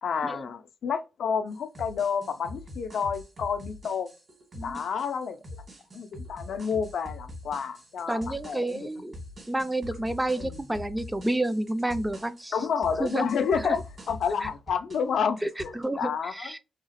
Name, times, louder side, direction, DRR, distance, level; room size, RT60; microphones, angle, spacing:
voice 1, 0.0-4.1 4.6-5.4 5.9-8.9 10.4-10.6 12.5-16.5, left 6 dB, 75° left, 0.3 m, -30 dB
sound 1, 1.5-15.1 15.4-15.8, left 1 dB, 55° right, 1.6 m, -44 dB
voice 2, 8.1-9.2 9.5-12.5 13.0-13.3 14.4-14.5 15.4-16.6, right 1 dB, 15° right, 0.3 m, -30 dB
2.8 x 2.4 x 2.7 m
supercardioid pair, 50°, 0 cm